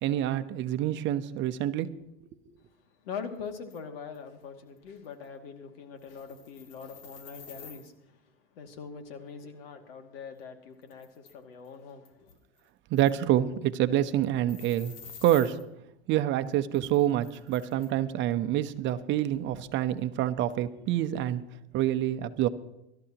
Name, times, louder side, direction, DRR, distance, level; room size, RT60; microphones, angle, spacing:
voice 1, 0.0-1.9 12.9-14.9 15.2-15.6 16.1-21.4 21.7-22.5, right 12 dB, 40° right, 11 dB, 0.9 m, -27 dB
voice 2, 3.0-7.9 8.5-12.3, left 6 dB, 80° left, 5 dB, 2.4 m, -42 dB
sound 1, 3.7-3.8 4.1-4.2 4.8-4.9 5.0-5.2 6.0-7.9 10.3-10.4 10.8-11.3 11.7-11.8 12.1-12.7 13.0-13.2 14.5-15.6 16.7-17.9, left 5 dB, 55° left, 2.6 m, -49 dB
24.5 x 13.0 x 3.0 m, 0.86 s
supercardioid pair, 130°, 29 cm